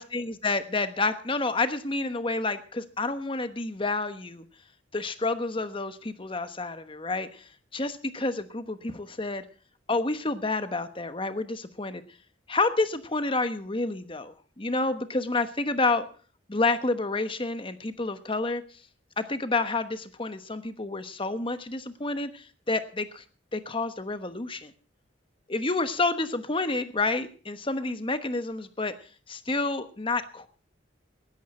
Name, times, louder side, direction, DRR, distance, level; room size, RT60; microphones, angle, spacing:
voice 1, 0.0-4.4 4.9-9.4 9.9-12.0 12.5-16.1 16.5-18.6 19.2-23.2 23.5-24.7 25.5-28.9 29.3-30.5, left 3 dB, 25° left, 11 dB, 1.1 m, -29 dB
18.0 x 13.5 x 4.3 m, 0.39 s
head